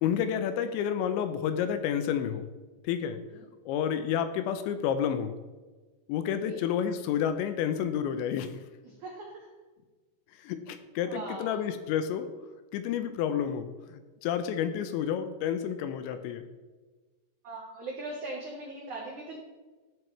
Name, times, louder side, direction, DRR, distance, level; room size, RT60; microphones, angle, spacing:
voice 1, 0.0-2.5 2.8-3.2 3.7-5.3 6.1-8.6 10.4-12.3 12.7-16.4, left 8 dB, 85° left, 10 dB, 2.9 m, -30 dB
voice 2, 8.8-9.5 11.0-11.6 17.4-19.4, right 2 dB, 90° right, -1 dB, 1.6 m, -40 dB
12.0 x 7.7 x 3.2 m, 1.3 s
omnidirectional pair, 5.4 m